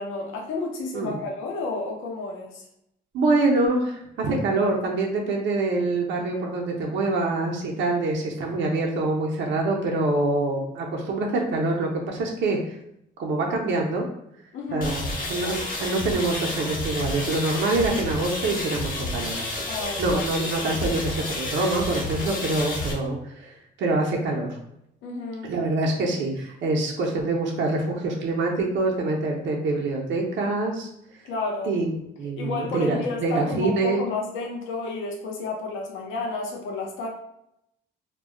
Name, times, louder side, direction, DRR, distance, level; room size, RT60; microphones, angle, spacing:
voice 1, 0.0-2.6 14.5-14.9 19.7-20.2 25.0-25.5 31.2-31.8 32.4-37.1, left 3 dB, 80° left, -1 dB, 0.6 m, -31 dB
voice 2, 3.1-12.8 13.2-14.0 14.7-19.7 20.0-24.6 25.4-30.9 31.7-31.9 32.2-34.0, right 2 dB, 70° right, -1 dB, 0.6 m, -25 dB
sound 1, 14.8-22.9, left 2 dB, 45° left, 0.9 m, -30 dB
2.2 x 2.0 x 3.6 m, 0.77 s
cardioid pair, 90°, 20 cm